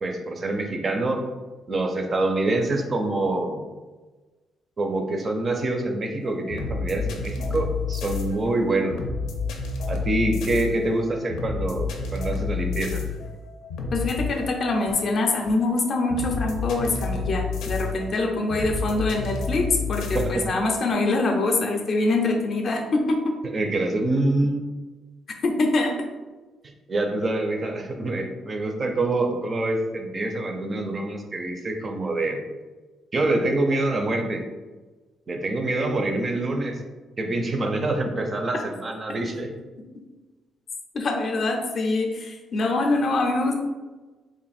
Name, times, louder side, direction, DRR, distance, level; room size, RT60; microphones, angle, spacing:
voice 1, 0.0-1.2 1.7-3.6 4.8-9.0 9.9-13.0 20.1-20.4 23.4-24.7 26.6-32.4 33.1-34.4 35.3-36.8 37.2-39.5, right 2 dB, 30° right, 4 dB, 0.4 m, -26 dB
sound 1, 6.2-20.9, left 4 dB, 90° left, 0.6 m, -30 dB
voice 2, 13.9-23.2 25.4-25.9 40.9-43.5, left 2 dB, 45° left, 3 dB, 0.5 m, -24 dB
3.0 x 2.5 x 4.1 m, 1.2 s
cardioid pair, 155°, 0 cm